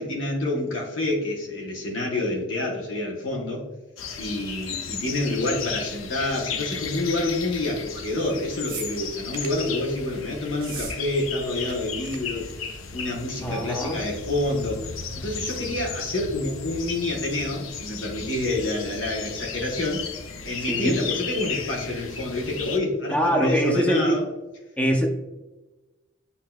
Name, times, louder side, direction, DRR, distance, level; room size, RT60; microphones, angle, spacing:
voice 1, 0.0-3.6 4.2-12.5 12.9-20.2 20.4-24.2, left 2 dB, 70° left, -2 dB, 1.0 m, -28 dB
sound 1, 4.0-22.8, left 6 dB, 85° left, 0.5 m, -35 dB
sound 2, 8.6-9.7 10.5-11.0 11.2-11.7 12.0-12.2 12.5-12.8 13.7-13.8, right 5 dB, 45° right, 0.7 m, -38 dB
voice 2, 13.4-14.0 20.7-21.0 23.1-24.2 24.8-25.1, equal, 5° left, 1 dB, 0.5 m, -23 dB
7.5 x 2.8 x 2.2 m, 1.1 s
head